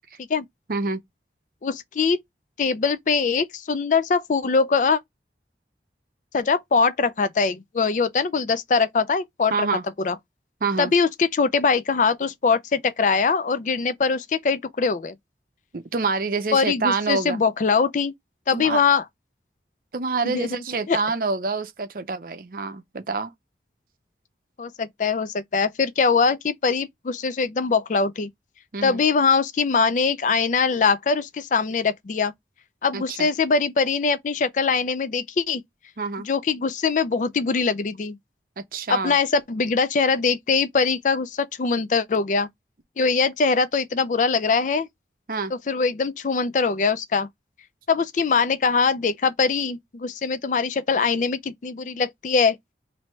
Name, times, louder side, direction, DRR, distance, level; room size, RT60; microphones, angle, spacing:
voice 1, 0.7-1.0 9.5-9.8 10.6-10.9 15.7-17.4 18.5-18.8 19.9-23.3 28.7-29.0 32.9-33.3 36.0-36.3 38.6-39.2 45.3-45.5, right 4 dB, 50° right, 0.6 m, -27 dB
voice 2, 1.6-2.2 2.6-5.0 6.3-9.7 10.0-10.2 10.8-15.2 16.5-18.1 18.5-19.0 20.2-21.0 24.6-28.3 28.8-32.3 32.8-35.6 36.2-38.2 38.9-42.5 43.0-44.9 45.5-47.3 47.9-52.6, left 5 dB, 45° left, 0.4 m, -22 dB
3.1 x 2.7 x 4.3 m
head